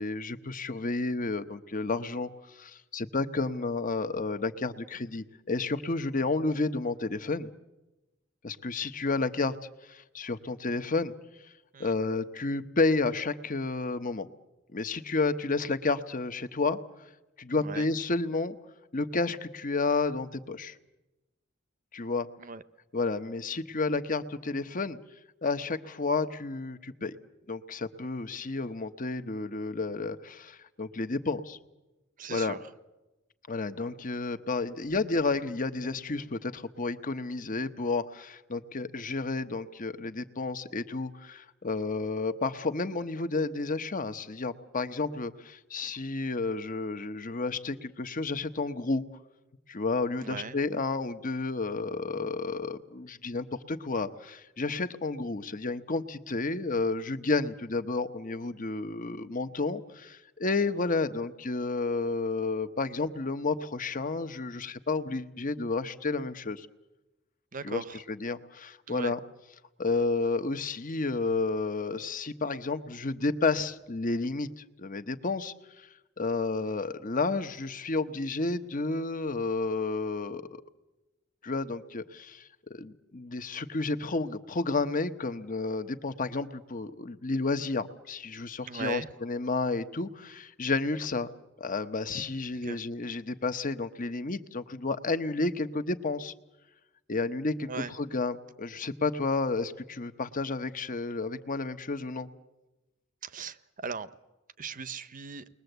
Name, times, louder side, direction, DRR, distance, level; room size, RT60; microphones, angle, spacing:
voice 1, 0.0-7.5 8.4-11.1 11.4-11.5 11.8-14.3 14.7-16.8 17.4-18.6 18.9-20.8 21.9-22.3 22.9-25.0 25.4-27.2 27.5-31.6 32.3-32.6 33.5-49.1 49.7-66.7 67.6-69.2 69.8-80.6 81.4-91.3 91.6-96.3 97.1-97.7 98.0-102.3, left 3 dB, 40° left, 10 dB, 1.1 m, -31 dB
voice 2, 17.5-17.9 22.4-22.6 32.2-32.6 50.2-50.6 67.5-68.0 68.9-69.1 88.6-89.1 92.5-92.8 97.7-97.9 103.2-104.1 104.6-105.5, right 5 dB, 40° right, 14 dB, 0.8 m, -39 dB
29.5 x 21.5 x 8.0 m, 1.1 s
head